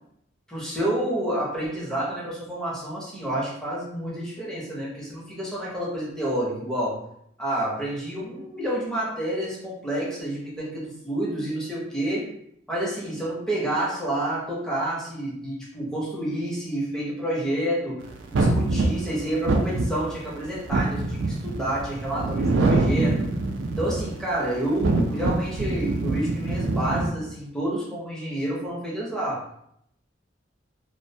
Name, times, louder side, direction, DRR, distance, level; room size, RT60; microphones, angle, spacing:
voice 1, 0.5-7.0 7.4-12.3 12.7-18.0 18.3-23.3 23.8-29.4, right 1 dB, 5° left, -6 dB, 0.7 m, -29 dB
sound 1, 18.3-24.2 24.6-27.1, right 2 dB, 80° right, 0.4 m, -24 dB
2.4 x 2.1 x 2.6 m, 0.73 s
head